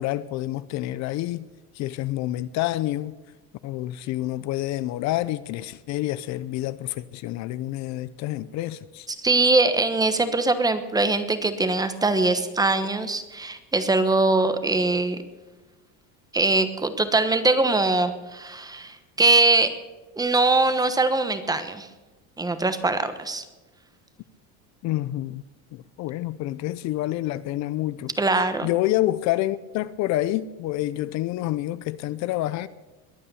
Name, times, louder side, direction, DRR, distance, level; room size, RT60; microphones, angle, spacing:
voice 1, 0.0-1.5 1.7-3.1 3.6-9.1 24.8-25.4 25.7-28.1 28.6-32.7, left 15 dB, 55° left, 0.6 m, -28 dB
voice 2, 9.2-15.2 16.3-19.8 20.2-21.9 22.4-23.4 28.2-28.7, right 2 dB, 10° right, 1.1 m, -22 dB
22.0 x 8.6 x 7.0 m
cardioid pair, 150°, 34 cm